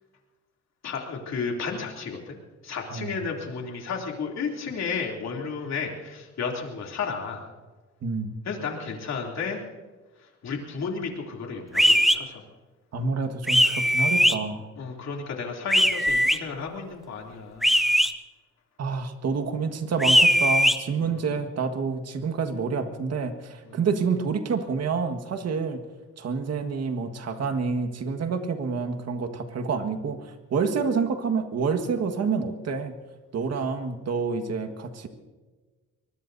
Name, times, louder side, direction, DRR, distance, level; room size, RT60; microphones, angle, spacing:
voice 1, 0.8-2.4 2.6-7.4 8.4-9.6 10.4-12.4 14.8-17.7 21.0-21.3 23.7-23.8, left 5 dB, 60° left, 0 dB, 3.0 m, -33 dB
voice 2, 8.0-8.3 12.9-14.7 18.8-25.8 26.2-32.9 33.3-35.1, right 5 dB, 55° right, 6 dB, 1.7 m, -28 dB
sound 1, 11.7-12.2 13.5-14.3 15.7-16.4 17.6-18.1 20.0-20.8, equal, ahead, 0.7 m, -19 dB
24.5 x 20.5 x 2.7 m, 1.3 s
cardioid pair, 90°, 30 cm